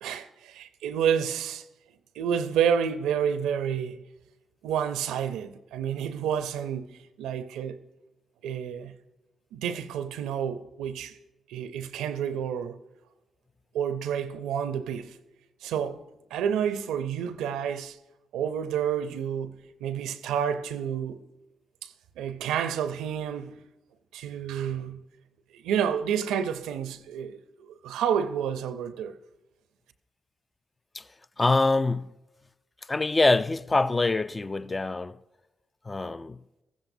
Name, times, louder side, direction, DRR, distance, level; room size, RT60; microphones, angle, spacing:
voice 1, 0.0-1.6 2.1-4.0 4.6-7.8 8.4-9.0 9.5-11.2 11.5-12.8 13.7-15.2 15.6-16.0 16.3-18.0 18.3-21.2 21.8-23.6 24.1-25.0 25.5-29.2, right 8 dB, 80° right, 0.5 m, -29 dB
voice 2, 31.4-32.1 32.9-35.2 35.8-36.4, left 2 dB, 30° left, 0.4 m, -25 dB
14.5 x 13.5 x 2.7 m
hypercardioid pair, 40°, 0 cm